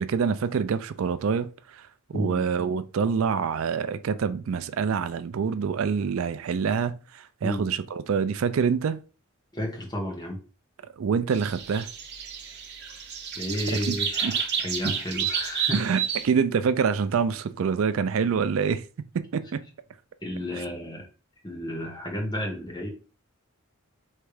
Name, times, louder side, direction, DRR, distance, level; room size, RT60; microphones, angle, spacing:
voice 1, 0.0-1.8 2.1-9.0 11.0-11.9 13.9-14.0 14.2-14.3 15.7-18.8 19.1-19.6, right 6 dB, 70° right, 0.4 m, -26 dB
voice 2, 2.1-2.5 7.4-7.6 9.5-10.4 13.3-15.9 20.2-21.1 21.4-22.9, left 1 dB, 20° left, 1.3 m, -32 dB
sound 1, 11.3-16.3, right 7 dB, 55° right, 0.8 m, -30 dB
3.4 x 3.2 x 4.9 m
head